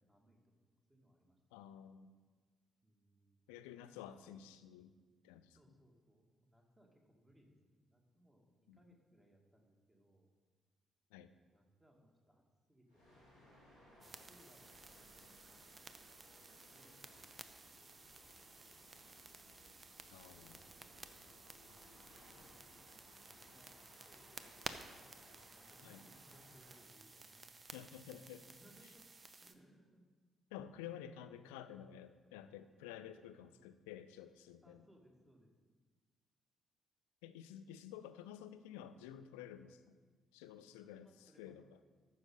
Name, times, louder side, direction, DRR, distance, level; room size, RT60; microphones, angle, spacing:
voice 1, 0.1-1.4 1.7-1.8 2.8-3.7 5.5-10.3 11.5-12.4 12.7-13.2 14.0-15.4 16.7-17.9 21.1-21.7 22.2-23.8 24.1-27.5 28.6-29.0 29.4-30.0 34.6-35.7 40.8-41.6, equal, 15° right, 0 dB, 2.2 m, -68 dB
voice 2, 1.5-2.1 3.5-4.9 5.2-5.6 8.7-8.8 11.1-11.3 20.1-20.6 25.8-26.0 27.7-28.5 30.5-34.8 37.2-40.0 40.3-41.7, left 10 dB, 70° left, 11 dB, 0.4 m, -52 dB
sound 1, 12.9-28.0, equal, 90° right, 3.3 m, -64 dB
sound 2, 14.0-29.5, right 3 dB, 35° right, 0.7 m, -55 dB
14.0 x 6.4 x 3.9 m, 1.4 s
figure-of-eight pair, 40°, 0 cm